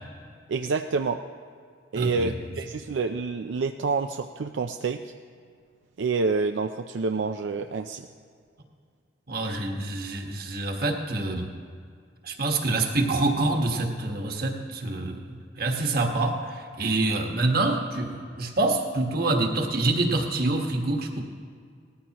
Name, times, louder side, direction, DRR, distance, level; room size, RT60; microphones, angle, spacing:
voice 1, 0.5-1.2 1.9-5.1 6.0-8.1, right 4 dB, 85° right, 6 dB, 0.4 m, -28 dB
voice 2, 1.9-2.3 9.3-11.5 12.2-21.2, right 2 dB, 55° right, 2 dB, 1.4 m, -26 dB
19.0 x 14.0 x 3.0 m, 2.2 s
head